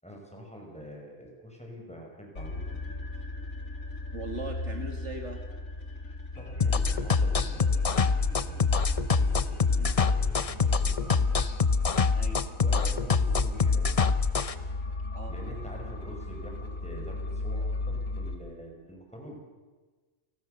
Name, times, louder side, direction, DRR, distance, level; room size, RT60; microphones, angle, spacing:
voice 1, 0.0-3.0 6.0-8.8 9.1-11.4 12.5-14.2 15.3-19.4, right 1 dB, 5° left, 0 dB, 5.8 m, -46 dB
sound 1, 2.4-18.4, left 1 dB, 75° left, 2.8 m, -37 dB
voice 2, 4.1-5.4 9.8-10.0 12.1-12.5 15.1-15.3, right 3 dB, 55° right, 4 dB, 2.4 m, -39 dB
sound 2, 6.6-14.5, left 5 dB, 35° left, 0.7 m, -24 dB
30.0 x 19.5 x 6.8 m, 1.3 s
omnidirectional pair, 1.4 m